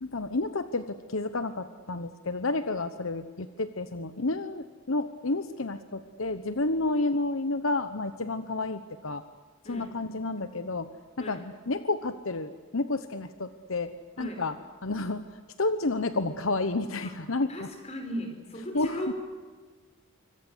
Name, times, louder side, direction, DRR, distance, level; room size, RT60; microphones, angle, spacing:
voice 1, 0.0-9.2 9.6-10.9 11.2-14.6 14.8-15.3 15.6-17.7 18.7-19.1, left 2 dB, 65° left, 10 dB, 1.1 m, -30 dB
voice 2, 17.5-19.1, equal, 30° left, 5 dB, 5.3 m, -37 dB
26.0 x 25.5 x 8.1 m, 1.4 s
head